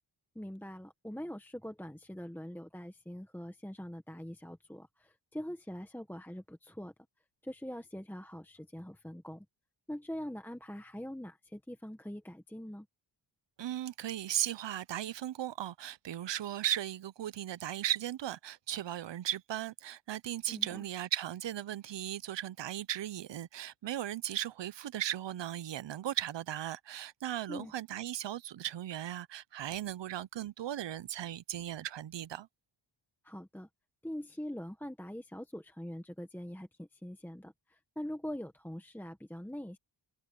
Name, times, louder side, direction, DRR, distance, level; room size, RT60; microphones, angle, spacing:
voice 1, 0.3-6.9 7.4-9.5 9.9-12.9 20.5-20.8 27.5-27.7 33.2-33.7 34.0-39.8, equal, 5° left, 1.1 m, -43 dB
voice 2, 13.6-32.5, right 12 dB, 65° right, 0.6 m, -37 dB
wide cardioid pair, 165°, 47 cm